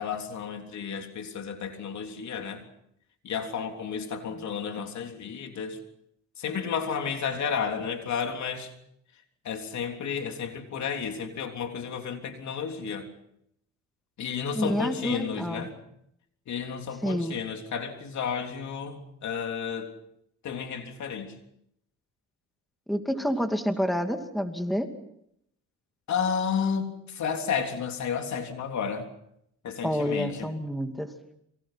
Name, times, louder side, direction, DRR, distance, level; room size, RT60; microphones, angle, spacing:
voice 1, 0.0-2.6 3.2-5.8 6.4-8.7 9.4-13.1 14.2-15.7 16.5-19.9 20.4-21.3 26.1-29.1 29.6-30.5, left 6 dB, 70° left, 5 dB, 3.5 m, -32 dB
voice 2, 14.5-15.7 17.0-17.3 22.9-24.9 29.8-31.1, equal, ahead, 6 dB, 2.6 m, -28 dB
28.5 x 24.5 x 5.9 m, 0.76 s
cardioid pair, 90°, 30 cm